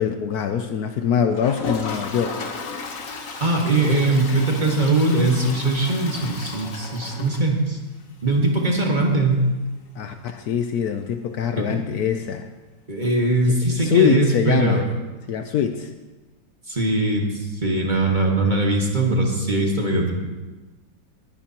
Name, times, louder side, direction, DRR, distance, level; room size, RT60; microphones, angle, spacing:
voice 1, 0.0-2.4 10.0-12.5 13.5-14.8 15.3-15.9, left 8 dB, 70° left, 7 dB, 1.1 m, -23 dB
Toilet flush, 1.3-8.0 8.3-8.4 8.6-8.7 9.0-9.1 11.6-11.7 13.0-13.1, left 4 dB, 50° left, 1.4 m, -34 dB
voice 2, 3.4-7.8 8.2-9.4 11.6-11.8 12.9-14.8 16.7-20.1, right 2 dB, 25° right, -1 dB, 1.6 m, -21 dB
20.0 x 10.5 x 2.9 m, 1.2 s
omnidirectional pair, 1.9 m